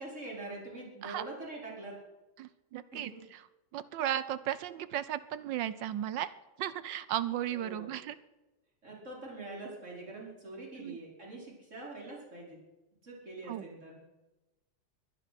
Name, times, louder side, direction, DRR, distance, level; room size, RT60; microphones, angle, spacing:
voice 1, 0.0-2.0 2.9-3.2 7.5-7.9 8.8-12.6 13.0-14.0, right 2 dB, 30° right, -3 dB, 5.1 m, -44 dB
voice 2, 2.4-3.1 3.7-6.3 6.6-8.2 10.8-11.0 13.5-13.7, right 11 dB, 65° right, 15 dB, 1.2 m, -35 dB
21.0 x 11.0 x 6.0 m, 1.1 s
omnidirectional pair, 2.4 m